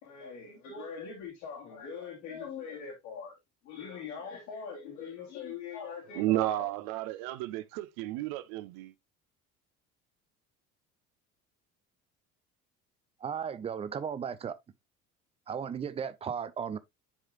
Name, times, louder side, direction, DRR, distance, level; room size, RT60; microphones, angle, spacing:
voice 1, 0.0-3.4 3.6-6.7, left 6 dB, 65° left, 2.8 m, -42 dB
voice 2, 6.1-8.9, right 16 dB, 50° right, 0.9 m, -32 dB
voice 3, 13.2-14.6 15.5-16.8, right 7 dB, 15° right, 0.4 m, -35 dB
11.0 x 4.8 x 2.4 m
figure-of-eight pair, 60°, 45 cm